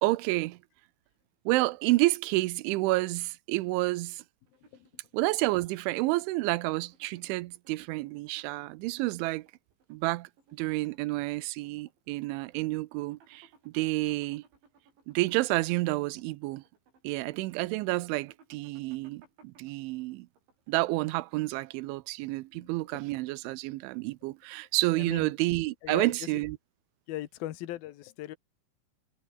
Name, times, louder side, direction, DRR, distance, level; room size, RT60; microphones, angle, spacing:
voice 1, 0.0-0.6 1.5-4.2 5.1-9.5 9.9-14.4 15.1-16.6 17.0-20.3 20.7-26.6, right 20 dB, 85° right, 3.1 m, -29 dB
sound 1, 4.5-21.3, right 5 dB, 70° right, 9.1 m, -64 dB
voice 2, 25.0-25.3 25.8-26.1 27.1-28.4, left 14 dB, 65° left, 2.7 m, -38 dB
omnidirectional pair, 5.5 m